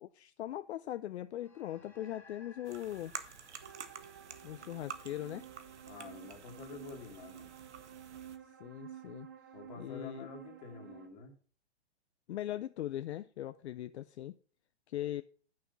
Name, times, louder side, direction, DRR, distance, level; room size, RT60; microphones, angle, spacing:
voice 1, 0.0-3.1 4.4-5.5 8.6-9.3 9.8-10.3 12.3-14.4 14.9-15.2, left 13 dB, 70° left, 0.5 m, -40 dB
sound 1, 1.3-6.0, left 3 dB, 5° left, 1.5 m, -62 dB
sound 2, 2.6-8.4, right 7 dB, 90° right, 1.2 m, -49 dB
sound 3, 3.6-11.1, right 9 dB, 20° right, 0.3 m, -52 dB
voice 2, 5.9-7.5 9.5-11.3, left 5 dB, 40° left, 2.2 m, -48 dB
8.5 x 6.3 x 5.3 m
hypercardioid pair, 155°, 34 cm